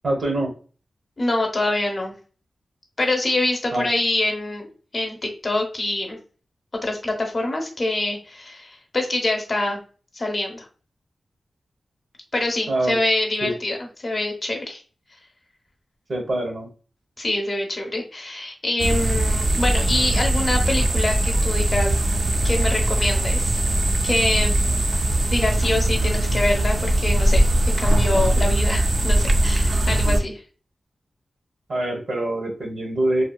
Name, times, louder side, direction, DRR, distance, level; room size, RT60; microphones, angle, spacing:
voice 1, 0.0-0.5 3.7-3.8 12.7-13.0 13.4-13.5 16.1-16.7 31.7-33.2, right 1 dB, 65° right, 1 dB, 0.8 m, -24 dB
voice 2, 1.2-2.1 3.0-4.7 4.9-5.2 5.4-6.2 6.8-9.8 10.1-10.7 12.3-14.8 17.2-22.0 22.4-23.6 24.0-24.6 25.3-27.5 27.8-30.4, left 2 dB, 40° left, 2 dB, 0.7 m, -25 dB
sound 1, 18.8-30.2, right 1 dB, 50° right, 0.4 m, -20 dB
2.7 x 2.2 x 2.2 m, 0.38 s
wide cardioid pair, 125°, 0 cm